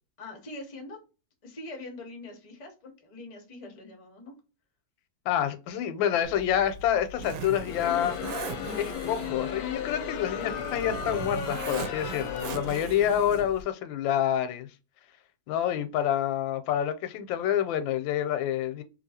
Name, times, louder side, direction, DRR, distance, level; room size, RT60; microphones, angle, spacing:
voice 1, 0.2-1.0 1.4-4.3, left 2 dB, 50° left, 0.4 m, -43 dB
voice 2, 5.3-8.2 8.8-14.7 15.5-18.8, left 10 dB, 85° left, 1.3 m, -27 dB
Zipper (clothing), 6.2-13.6, right 3 dB, 75° right, 1.1 m, -39 dB
Crowd, 7.5-13.2, left 7 dB, 70° left, 0.9 m, -35 dB
2.9 x 2.7 x 2.7 m
omnidirectional pair, 2.0 m